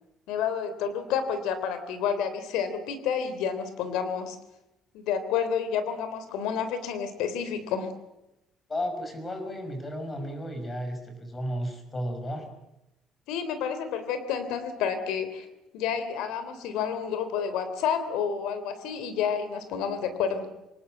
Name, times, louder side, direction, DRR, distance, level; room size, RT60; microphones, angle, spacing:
voice 1, 0.3-4.4 4.9-7.9 13.3-15.5 15.7-20.5, left 7 dB, 90° left, 11 dB, 3.5 m, -30 dB
voice 2, 8.7-12.5, equal, 20° left, 6 dB, 5.3 m, -33 dB
27.0 x 19.0 x 7.5 m, 0.93 s
cardioid pair, 155°, 0 cm